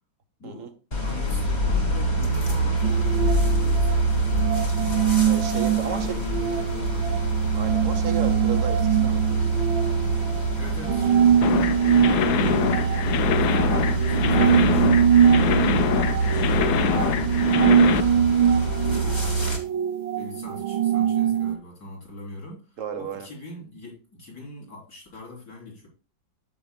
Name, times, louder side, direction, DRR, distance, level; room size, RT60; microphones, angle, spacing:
voice 1, 0.4-0.7 1.0-5.0 5.8-7.2 10.5-15.6 16.2-17.0 17.7-19.4 20.1-25.9, left 2 dB, 50° left, -4 dB, 4.2 m, -42 dB
sound 1, 0.9-19.6, right 3 dB, 25° left, 1.5 m, -25 dB
sound 2, 2.8-21.5, right 8 dB, 85° right, 1.5 m, -23 dB
voice 2, 5.3-6.2 7.5-9.4 15.7-16.0 22.8-23.3, right 8 dB, 50° right, 7 dB, 1.2 m, -34 dB
sound 3, 11.4-18.0, left 8 dB, 65° left, 1.1 m, -24 dB
9.2 x 8.0 x 2.2 m, 0.35 s
omnidirectional pair, 2.1 m